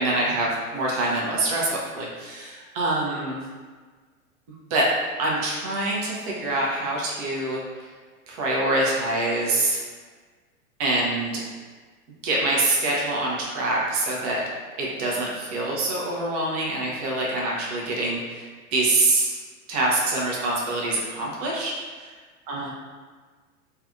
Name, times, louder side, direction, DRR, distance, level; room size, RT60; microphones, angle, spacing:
voice 1, 0.0-3.4 4.7-4.9 5.2-7.9 8.3-9.8 10.8-11.4 12.2-14.4 14.8-19.4 19.7-21.7 22.0-22.1 22.5-22.7, right 2 dB, 30° right, -4 dB, 0.4 m, -25 dB
2.4 x 2.2 x 2.5 m, 1.5 s
figure-of-eight pair, 100°, 44 cm